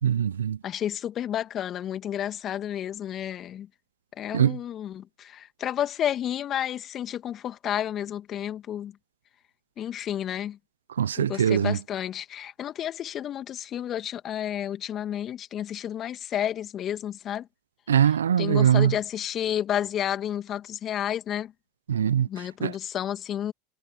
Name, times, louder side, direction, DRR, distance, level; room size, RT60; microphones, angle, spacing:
voice 1, 0.0-0.6 4.3-4.6 11.0-11.8 17.9-18.9 21.9-22.3 22.6-22.7, right 9 dB, 80° right, 0.8 m, -22 dB
voice 2, 0.6-3.7 4.2-8.9 9.8-10.6 11.2-17.5 18.4-21.5 22.3-23.5, left 10 dB, 40° left, 2.5 m, -31 dB
hypercardioid pair, 85°, 0 cm